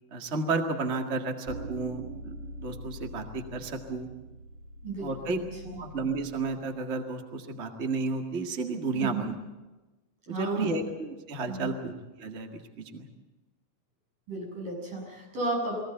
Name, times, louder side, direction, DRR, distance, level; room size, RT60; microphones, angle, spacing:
voice 1, 0.1-2.3 2.6-4.1 5.0-5.4 5.8-9.3 10.3-11.9 12.2-12.6 12.9-13.1, right 3 dB, 30° right, 4 dB, 1.5 m, -32 dB
sound 1, 1.4-6.5, right 1 dB, 55° right, 2.1 m, -43 dB
voice 2, 4.8-5.8 8.9-9.3 10.3-10.9 11.5-11.7 14.3-15.8, right 2 dB, 90° right, -2 dB, 8.9 m, -34 dB
22.5 x 16.5 x 9.1 m, 1.1 s
omnidirectional pair, 3.7 m